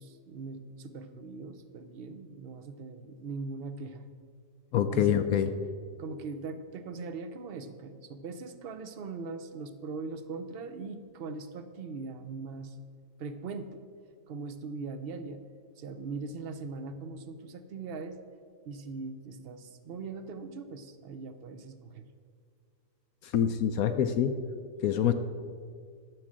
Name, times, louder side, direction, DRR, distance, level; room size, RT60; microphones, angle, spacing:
voice 1, 0.0-4.0 4.9-5.4 6.0-12.8 13.2-13.8 14.3-15.4 15.8-18.2 18.6-22.1, right 4 dB, 60° right, 10 dB, 0.6 m, -40 dB
voice 2, 4.7-5.5 23.2-24.3 24.8-25.1, left 9 dB, 70° left, 9 dB, 0.9 m, -25 dB
12.0 x 6.3 x 7.4 m, 2.1 s
omnidirectional pair, 1.8 m